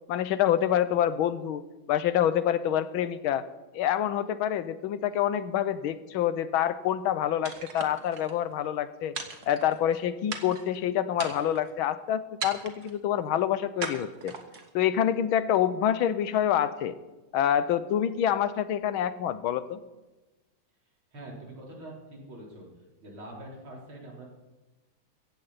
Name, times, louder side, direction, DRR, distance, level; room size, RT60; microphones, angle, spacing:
voice 1, 0.1-1.6 1.9-3.4 3.7-9.1 9.5-14.3 14.7-17.0 17.3-19.8, left 10 dB, 80° left, 13 dB, 1.6 m, -27 dB
sound 1, 7.5-8.3 9.2-10.0 10.3-10.8 11.2-11.7 12.4-13.0 13.8-14.7, right 5 dB, 50° right, 1.8 m, -38 dB
voice 2, 21.1-22.7 23.0-24.2, right 1 dB, 80° right, -3 dB, 4.7 m, -44 dB
15.5 x 15.5 x 4.2 m, 1.1 s
omnidirectional pair, 2.2 m